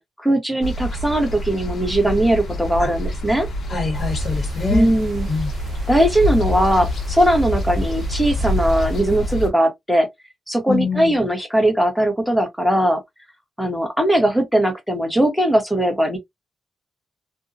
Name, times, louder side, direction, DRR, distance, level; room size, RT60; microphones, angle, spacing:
voice 1, 0.0-3.5 4.7-5.3 5.9-10.1 10.5-13.0 13.6-16.2, right 1 dB, ahead, 1.0 m, -19 dB
sound 1, 0.6-9.5, equal, 75° left, 0.8 m, -28 dB
voice 2, 3.7-4.9 5.3-5.5 10.7-11.2, left 4 dB, 45° left, 1.0 m, -25 dB
sound 2, 3.9-9.0, left 1 dB, 55° right, 0.5 m, -26 dB
2.6 x 2.2 x 2.4 m
wide cardioid pair, 130°, 0 cm